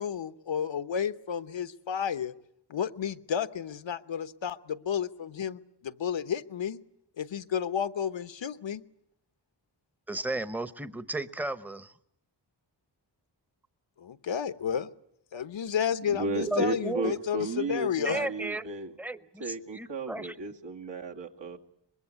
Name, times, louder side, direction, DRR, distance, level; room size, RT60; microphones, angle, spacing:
voice 1, 0.0-2.3 2.7-6.8 7.2-8.8 14.0-14.9 15.3-18.2, left 8 dB, 80° left, 12 dB, 1.0 m, -31 dB
voice 2, 10.1-11.9 16.5-17.1 17.5-17.6 18.0-18.6 19.0-20.3, right 2 dB, 5° right, 13 dB, 0.9 m, -34 dB
voice 3, 16.1-18.9 19.4-21.6, right 3 dB, 70° right, 1 dB, 2.4 m, -34 dB
24.0 x 21.0 x 8.5 m, 0.73 s
wide cardioid pair, 100°, 44 cm